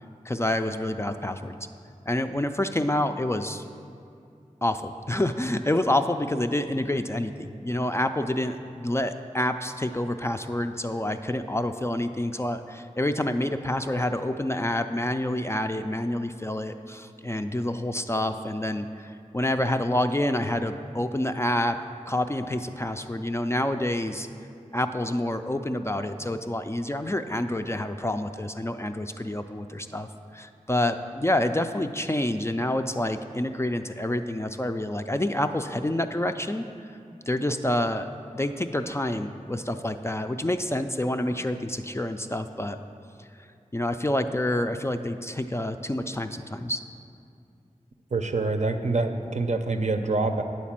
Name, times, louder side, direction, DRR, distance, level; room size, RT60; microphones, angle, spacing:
voice 1, 0.3-1.6 2.1-3.6 4.6-21.8 22.1-24.3 24.7-30.1 30.3-36.7 37.3-38.1 38.3-42.8 43.7-46.8, left 1 dB, 20° left, 7 dB, 0.3 m, -28 dB
voice 2, 48.1-50.4, right 3 dB, 60° right, 6 dB, 0.6 m, -26 dB
9.2 x 4.2 x 7.3 m, 2.5 s
wide cardioid pair, 60°, 14 cm